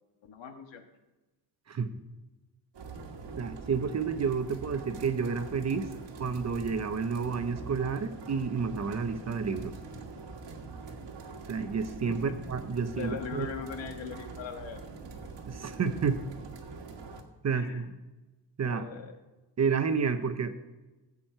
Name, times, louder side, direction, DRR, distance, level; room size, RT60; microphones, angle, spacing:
voice 1, 0.2-0.8 12.9-14.8 17.5-17.9 18.6-19.2, left 6 dB, 80° left, 5 dB, 1.5 m, -40 dB
sound 1, 2.7-17.2, right 4 dB, 65° right, 1.7 m, -44 dB
voice 2, 3.3-5.9 6.2-9.7 11.5-13.5 15.5-16.2 17.4-17.9 18.6-18.9 19.6-20.6, right 5 dB, 35° right, 9 dB, 0.8 m, -30 dB
16.5 x 8.4 x 4.4 m, 1.1 s
wide cardioid pair, 170°, 44 cm